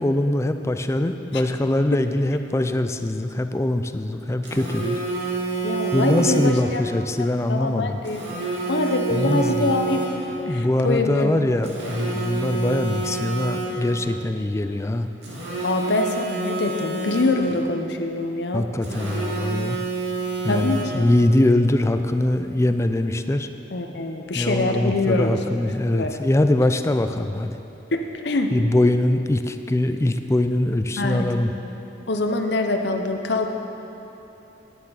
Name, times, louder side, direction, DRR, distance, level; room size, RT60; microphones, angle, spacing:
voice 1, 0.0-5.0 5.9-8.0 9.1-9.7 10.5-15.1 18.5-19.8 20.4-23.5 24.3-27.6 28.5-31.5, left 1 dB, 15° left, 8 dB, 0.4 m, -22 dB
Telephone, 4.4-6.8 8.0-10.4 11.6-14.0 15.2-17.6 18.8-21.2, right 3 dB, 80° right, 2.1 m, -28 dB
voice 2, 5.6-6.8 7.5-8.2 8.7-10.0 10.5-11.3 15.6-18.6 20.4-21.1 23.7-25.4 25.9-26.1 27.9-28.5 31.0-31.3 32.1-33.5, left 2 dB, 70° left, 5 dB, 0.8 m, -24 dB
9.8 x 9.4 x 5.6 m, 3.0 s
head